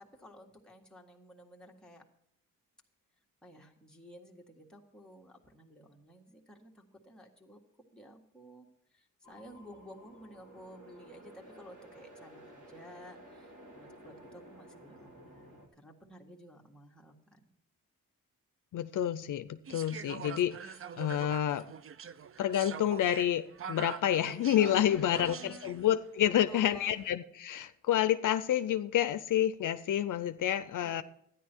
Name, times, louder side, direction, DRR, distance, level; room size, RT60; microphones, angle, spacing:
voice 1, 0.0-2.0 3.4-7.6 7.9-17.5 24.8-25.8 26.3-27.0 30.8-31.0, equal, ahead, -1 dB, 1.7 m, -53 dB
sound 1, 9.2-15.7, right 1 dB, 70° right, 2.5 m, -54 dB
voice 2, 18.7-21.7 22.4-31.0, left 11 dB, 70° left, 11 dB, 0.5 m, -29 dB
sound 2, 19.7-25.9 26.7-27.1, right 7 dB, 45° right, 0.5 m, -44 dB
13.0 x 10.0 x 4.5 m, 0.71 s
wide cardioid pair, 125°, 32 cm